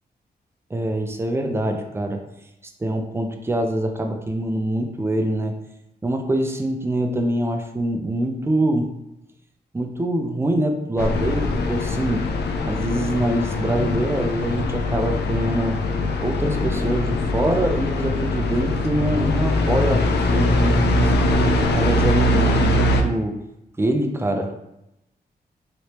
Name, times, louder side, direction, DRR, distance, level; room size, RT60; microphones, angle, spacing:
voice 1, 0.7-2.2 2.8-5.5 6.0-8.9 9.7-12.3 12.7-15.8 16.2-21.1 21.7-23.4 23.8-24.5, right 1 dB, 15° right, 4 dB, 0.5 m, -24 dB
sound 1, 11.0-23.0, left 2 dB, 80° left, 0.4 m, -22 dB
3.1 x 3.0 x 2.9 m, 0.87 s
cardioid pair, 85°, 17 cm